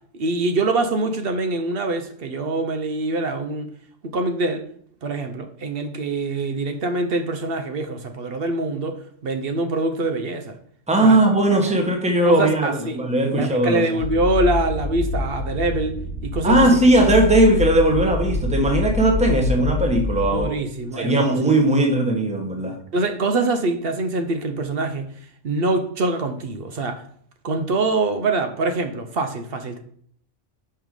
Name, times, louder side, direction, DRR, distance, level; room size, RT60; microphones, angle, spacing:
voice 1, 0.1-3.7 4.0-4.7 5.0-10.6 11.0-11.2 11.7-11.8 12.2-13.0 13.3-16.0 16.2-16.7 20.3-21.4 22.9-25.1 25.4-27.0 27.4-29.8, right 2 dB, 55° right, 0.8 m, -24 dB
voice 2, 10.9-13.9 16.4-20.5 21.0-22.8, right 1 dB, 5° right, 1.0 m, -18 dB
sound 1, 14.0-20.5, left 3 dB, 75° left, 1.2 m, -26 dB
5.7 x 5.2 x 4.7 m
omnidirectional pair, 1.2 m